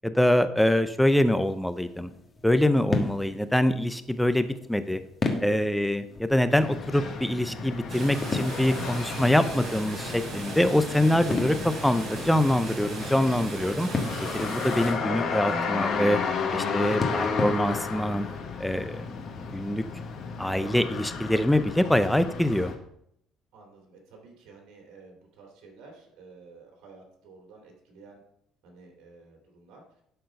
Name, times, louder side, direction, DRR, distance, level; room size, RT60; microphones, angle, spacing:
voice 1, 0.0-2.1 2.4-5.0 5.4-13.9 14.3-16.2 16.5-18.3 18.6-19.0 19.5-19.8 20.4-22.7, left 1 dB, 5° left, 11 dB, 0.6 m, -24 dB
sound 1, 1.2-18.4, left 3 dB, 25° left, 1.5 m, -37 dB
voice 2, 3.7-4.1 23.5-28.2 28.6-29.8, right 4 dB, 80° right, 0 dB, 3.0 m, -52 dB
sound 2, 6.5-22.7, left 5 dB, 55° left, 1.6 m, -33 dB
sound 3, 7.9-14.9, right 2 dB, 50° right, 3.9 m, -38 dB
11.5 x 4.5 x 5.2 m, 0.71 s
cardioid pair, 125°, 0 cm